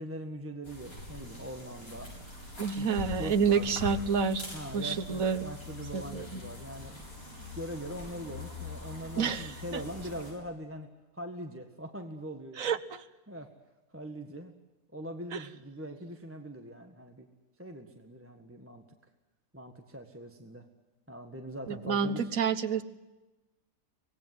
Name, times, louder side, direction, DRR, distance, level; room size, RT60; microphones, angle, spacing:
voice 1, 0.0-2.1 2.7-2.9 3.1-3.7 4.5-7.0 7.5-10.9 11.1-12.7 13.3-13.5 13.9-14.5 14.9-17.3 17.6-18.8 19.5-20.7 21.1-22.3, equal, 10° right, 4 dB, 1.7 m, -42 dB
sound 1, 0.6-10.3, left 3 dB, 70° left, 8.5 m, -43 dB
voice 2, 2.6-4.4 4.7-5.4 5.9-6.4 9.2-9.8 12.6-13.0 15.3-15.4 21.7-22.8, right 6 dB, 65° right, 11 dB, 1.6 m, -29 dB
24.5 x 19.0 x 9.5 m, 1.1 s
omnidirectional pair, 1.5 m